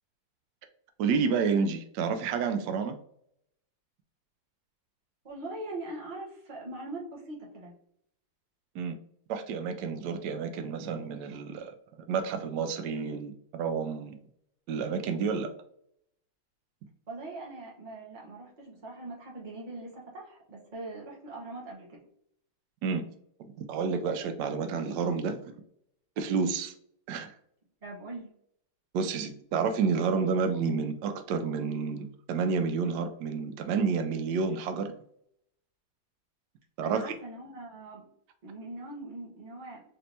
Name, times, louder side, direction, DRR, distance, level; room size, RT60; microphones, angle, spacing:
voice 1, 1.0-3.0 8.7-8.9 9.3-11.7 12.1-14.1 14.7-15.5 22.8-23.0 23.4-25.5 26.2-26.7 27.1-27.3 28.9-34.9 36.8-37.1, right 5 dB, 85° right, 7 dB, 0.9 m, -30 dB
voice 2, 5.2-7.8 17.1-22.0 27.8-28.3 36.8-38.1 38.4-39.8, right 2 dB, 45° right, -3 dB, 0.6 m, -41 dB
4.3 x 3.2 x 2.6 m, 0.69 s
omnidirectional pair, 2.4 m